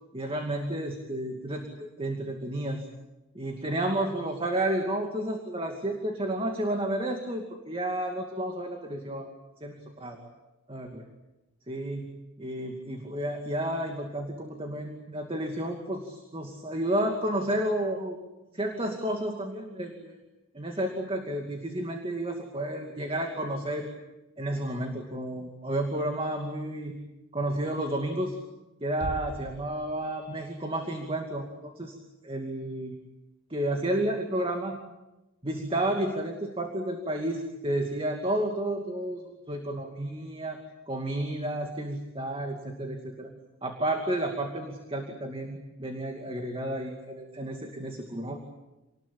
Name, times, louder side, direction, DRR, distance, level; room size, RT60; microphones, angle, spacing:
voice 1, 0.1-2.9 3.3-9.3 9.6-10.3 10.7-11.0 11.7-18.2 18.5-20.2 20.5-23.9 24.4-26.9 27.3-28.4 28.8-32.0 32.2-32.9 33.5-34.8 35.4-40.6 40.9-43.3 43.6-48.4, right 1 dB, 25° right, 3 dB, 2.5 m, -31 dB
sound 1, 29.0-30.6, equal, 45° right, 3.2 m, -40 dB
28.5 x 20.0 x 8.7 m, 1.0 s
head